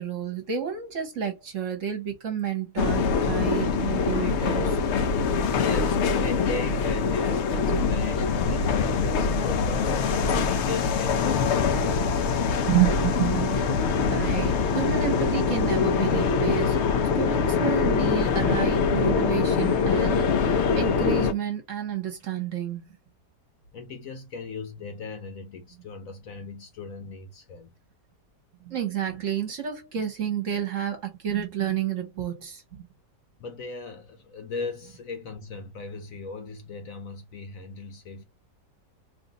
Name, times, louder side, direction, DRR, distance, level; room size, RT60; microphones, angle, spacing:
voice 1, 0.0-4.8 12.6-16.8 17.1-22.9 28.6-32.8, right 10 dB, 55° right, 1.1 m, -30 dB
sound 1, 2.8-21.3, left 5 dB, 85° left, 0.6 m, -24 dB
voice 2, 3.6-4.0 5.6-12.7 23.7-27.7 33.4-38.2, left 4 dB, 60° left, 1.0 m, -38 dB
3.1 x 2.5 x 3.9 m
omnidirectional pair, 1.8 m